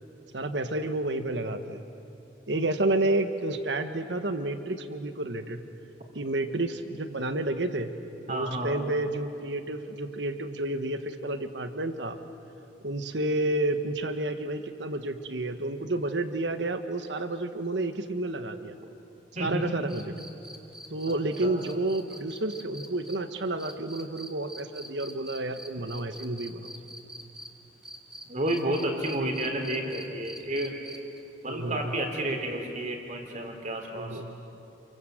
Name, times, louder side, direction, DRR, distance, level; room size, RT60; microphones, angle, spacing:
voice 1, 0.3-1.8 2.5-5.6 6.1-7.9 8.3-12.2 12.8-18.8 19.4-20.1 20.9-26.7 31.5-31.9 33.9-34.4, right 2 dB, 70° right, 8 dB, 1.4 m, -30 dB
voice 2, 8.3-8.8 19.4-19.7 21.4-21.6 28.3-30.7 31.4-34.3, right 1 dB, 45° right, 3 dB, 3.6 m, -31 dB
sound 1, 19.9-27.5 27.8-31.2 32.8-32.9, right 1 dB, 5° right, 1.9 m, -44 dB
28.5 x 24.0 x 7.9 m, 2.8 s
head